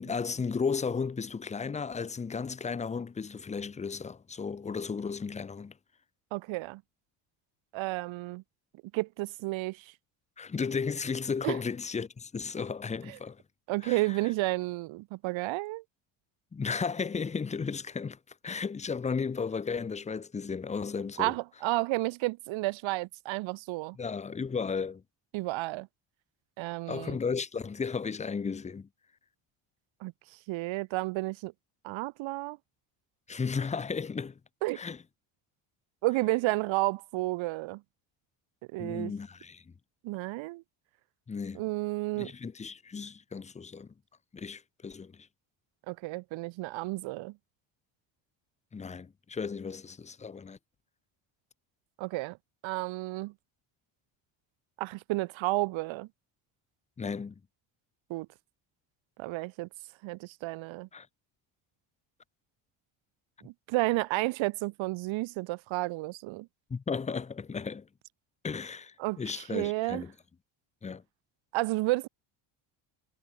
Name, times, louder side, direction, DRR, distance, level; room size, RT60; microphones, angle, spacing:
voice 1, 0.0-5.7 10.4-13.4 13.8-14.2 16.5-18.2 18.4-21.3 24.0-25.0 26.9-28.9 33.3-34.4 34.8-35.0 38.8-39.6 41.3-41.6 42.2-43.9 44.3-45.3 48.7-50.6 57.0-57.3 60.9-61.1 66.7-67.9 68.4-70.1 70.8-71.0, left 5 dB, 15° left, 0.6 m, -34 dB
voice 2, 6.3-6.8 7.7-8.4 8.9-9.9 11.4-11.6 13.1-13.2 13.7-15.8 21.2-24.0 25.3-25.9 26.6-27.2 30.0-30.1 30.5-31.5 31.8-32.6 34.6-34.8 36.0-37.8 38.7-39.1 40.0-40.6 41.5-42.3 45.9-47.4 52.0-52.4 52.6-53.3 54.8-56.1 58.1-58.3 59.2-59.7 60.0-60.9 63.4-66.5 69.0-70.0 71.5-72.1, right 20 dB, 65° right, 0.7 m, -31 dB
cardioid pair, 125°, 50 cm